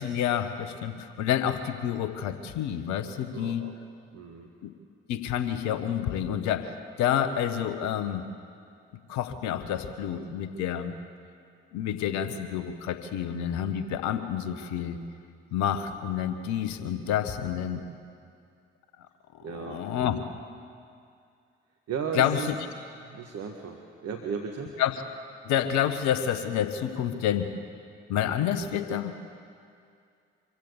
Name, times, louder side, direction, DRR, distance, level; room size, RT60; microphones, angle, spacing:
voice 1, 0.0-3.6 4.6-4.7 5.1-6.7 7.0-8.2 9.1-10.9 11.7-15.0 15.5-17.8 19.3-20.2 22.1-22.5 24.8-25.0 25.4-27.5 28.1-29.1, left 9 dB, 70° left, 10 dB, 1.3 m, -28 dB
voice 2, 3.3-3.7 4.1-4.5 19.4-19.8 21.9-22.5 22.8-23.8 24.0-24.7, right 6 dB, 55° right, 2 dB, 1.7 m, -35 dB
24.5 x 15.5 x 8.3 m, 2.4 s
figure-of-eight pair, 40°, 30 cm